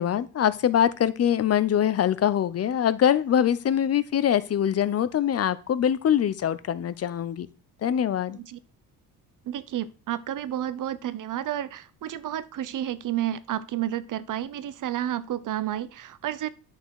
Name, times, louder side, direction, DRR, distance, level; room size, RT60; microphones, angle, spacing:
voice 1, 0.0-7.5 7.8-8.4, left 9 dB, 40° left, 15 dB, 0.7 m, -23 dB
voice 2, 9.4-16.5, right 12 dB, 55° right, 15 dB, 0.7 m, -31 dB
10.5 x 6.6 x 4.7 m, 0.35 s
cardioid pair, 155°, 38 cm